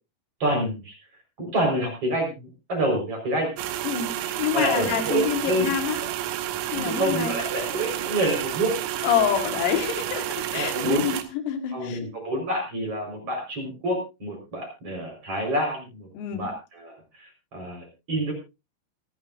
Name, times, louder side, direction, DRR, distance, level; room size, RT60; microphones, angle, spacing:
voice 1, 0.4-0.9 1.4-3.8 4.2-5.7 6.7-8.7 10.5-11.0 11.7-18.3, right 1 dB, 30° right, 1 dB, 5.1 m, -28 dB
sound 1, 3.6-11.2, right 12 dB, 90° right, 3.9 m, -30 dB
voice 2, 3.8-6.0 6.7-7.3 9.0-10.3 10.5-12.0 16.1-16.5, left 8 dB, 85° left, 6 dB, 4.5 m, -27 dB
27.0 x 9.3 x 2.6 m, 0.27 s
omnidirectional pair, 6.0 m